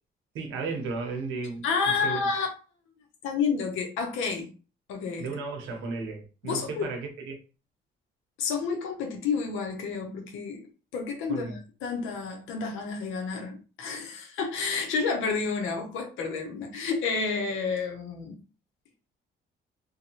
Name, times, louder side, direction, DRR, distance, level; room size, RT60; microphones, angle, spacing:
voice 1, 0.3-1.7 2.0-2.2 5.2-7.4 11.3-11.6, right 4 dB, 90° right, 0.7 m, -34 dB
voice 2, 1.6-2.5 3.2-4.5 4.9-5.3 6.4-6.8 8.4-10.6 10.9-18.4, left 5 dB, 90° left, 0.7 m, -30 dB
2.6 x 2.2 x 2.8 m
cardioid pair, 90°, 20 cm